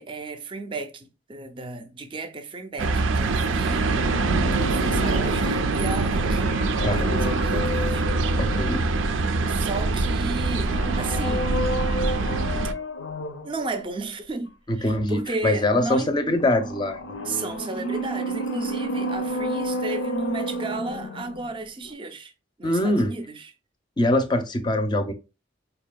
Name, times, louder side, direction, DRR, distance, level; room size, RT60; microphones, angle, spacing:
voice 1, 0.0-3.9 4.6-6.5 6.9-8.6 9.5-11.5 13.4-16.1 17.2-22.3 22.6-23.5, right 3 dB, 25° right, 0.5 m, -33 dB
sound 1, 2.8-12.7, right 3 dB, 85° right, 0.4 m, -24 dB
sound 2, 3.8-9.5 10.6-13.6 16.4-21.6 21.9-22.0, equal, 85° left, 0.6 m, -31 dB
voice 2, 8.4-8.9 14.7-17.0 22.6-23.1 24.0-25.1, left 1 dB, 25° left, 0.5 m, -23 dB
4.9 x 2.6 x 2.3 m
head